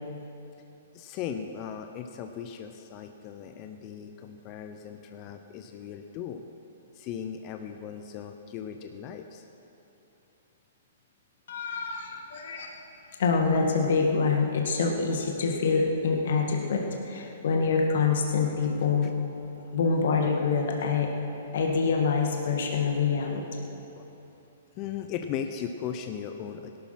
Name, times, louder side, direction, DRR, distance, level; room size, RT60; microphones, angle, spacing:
voice 1, 0.9-6.4 6.9-9.4 17.2-17.4 19.0-19.1 19.6-19.8 23.9-24.1 24.8-26.8, left 8 dB, 35° left, 6 dB, 0.8 m, -38 dB
voice 2, 11.5-12.7 13.2-19.1 19.7-21.1 21.5-23.4, left 5 dB, 65° left, 1 dB, 1.9 m, -26 dB
17.5 x 12.0 x 5.9 m, 2.9 s
hypercardioid pair, 120°, 0 cm